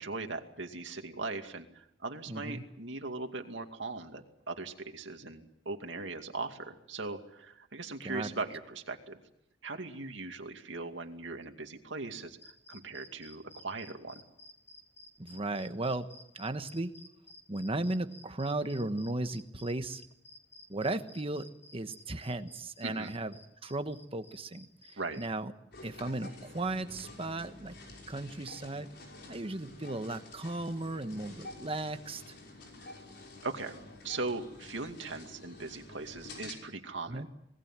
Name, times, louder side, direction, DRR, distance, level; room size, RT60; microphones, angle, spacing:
voice 1, 0.0-9.2 9.6-14.2 22.8-23.1 25.0-25.2 32.8-32.9 33.4-33.7 34.0-37.3, right 3 dB, 75° right, 5 dB, 2.4 m, -39 dB
voice 2, 2.3-2.6 8.0-8.3 15.2-16.1 16.3-16.9 17.5-20.0 20.7-23.3 23.6-24.7 25.2-25.5 25.8-27.7 28.1-28.9 29.3-32.2 37.1-37.3, right 2 dB, 30° right, 9 dB, 1.3 m, -35 dB
sound 1, 12.4-25.3, left 2 dB, 15° left, 4.2 m, -53 dB
sound 2, 25.7-36.6, left 2 dB, 60° left, 5.8 m, -49 dB
26.0 x 20.0 x 7.5 m, 0.80 s
head